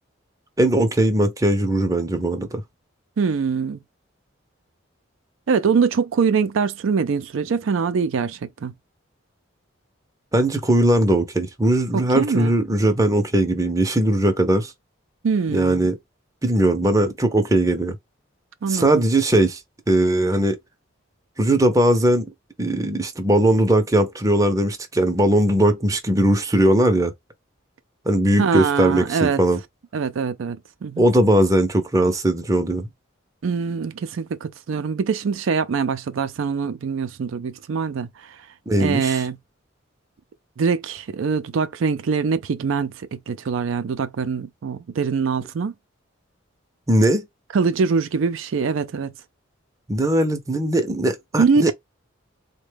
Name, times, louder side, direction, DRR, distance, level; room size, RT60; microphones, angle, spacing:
voice 1, 0.6-2.6 10.3-14.7 15.5-15.9 16.4-18.0 18.7-19.6 19.9-20.6 21.4-22.3 22.6-27.1 28.1-29.6 31.0-32.9 38.7-39.2 46.9-47.3 49.9-51.7, right 1 dB, 15° right, 0.6 m, -19 dB
voice 2, 3.2-3.8 5.5-8.7 11.9-12.5 15.2-15.9 18.6-19.0 28.4-29.4 29.9-31.1 33.4-38.4 38.8-39.4 40.6-45.7 47.5-49.1 51.4-51.7, right 5 dB, 70° right, 0.4 m, -23 dB
3.7 x 2.2 x 3.3 m
head